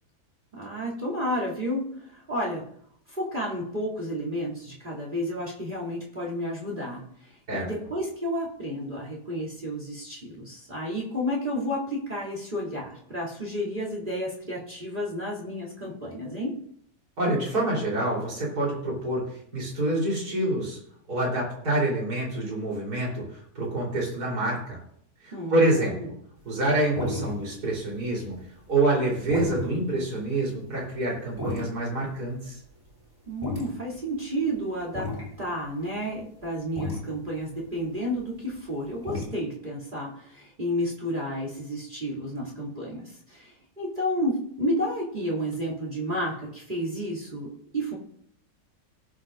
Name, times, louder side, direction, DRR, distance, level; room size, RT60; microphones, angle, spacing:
voice 1, 0.5-2.6 3.1-16.5 25.3-26.1 33.3-35.1 35.4-47.9, equal, 30° right, -4 dB, 3.1 m, -31 dB
voice 2, 17.2-19.2 19.5-20.8 21.1-24.8 25.2-26.1 26.4-28.4 28.7-32.6, right 1 dB, 65° right, -3 dB, 4.4 m, -27 dB
sound 1, 26.6-26.7 27.0-27.6 27.8-28.4 28.7-32.5 32.8-32.9 33.3-34.6 34.9-35.3 35.9-36.0 36.4-36.5 36.8-39.2, left 2 dB, 10° right, 4.1 m, -33 dB
18.0 x 8.3 x 2.6 m, 0.67 s
omnidirectional pair, 1.8 m